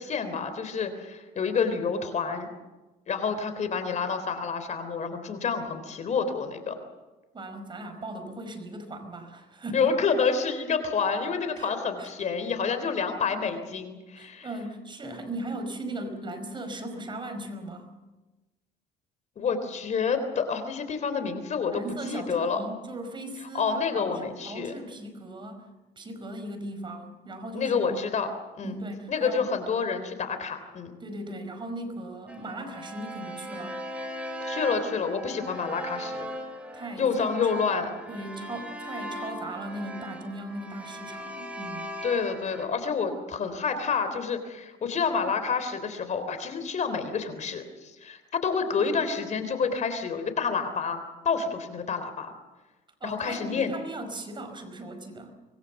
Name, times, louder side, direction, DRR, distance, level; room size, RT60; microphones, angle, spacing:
voice 1, 0.0-2.5 3.1-6.8 9.7-14.5 19.4-22.6 23.5-24.7 27.5-28.3 28.6-28.8 29.1-30.9 34.4-36.3 37.0-37.9 42.0-52.3 53.0-53.7, left 5 dB, 45° left, 9 dB, 3.6 m, -28 dB
voice 2, 7.3-9.9 11.6-12.1 14.1-17.9 20.4-20.5 21.7-25.7 26.0-27.9 28.6-29.5 31.0-33.8 36.7-37.6 38.1-41.9 53.0-55.3, right 1 dB, 30° right, 7 dB, 5.1 m, -38 dB
sound 1, 32.3-42.7, equal, 5° right, 5.1 m, -39 dB
25.5 x 21.0 x 7.2 m, 1.1 s
cardioid pair, 110°, 17 cm